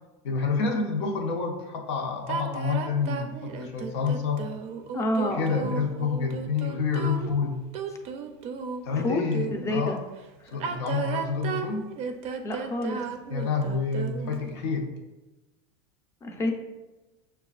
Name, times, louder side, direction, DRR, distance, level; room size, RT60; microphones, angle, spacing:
voice 1, 0.2-4.5 5.3-7.6 8.8-10.0 10.5-11.9 13.3-14.9, left 5 dB, 80° left, 2 dB, 0.8 m, -28 dB
sound 1, 2.3-9.8 10.5-14.5, right 6 dB, 45° right, 0.4 m, -34 dB
voice 2, 4.9-5.7 9.0-10.0 12.4-13.1 16.2-16.5, left 1 dB, 20° left, 3 dB, 0.6 m, -28 dB
6.3 x 2.3 x 2.4 m, 1.1 s
supercardioid pair, 110°, 15 cm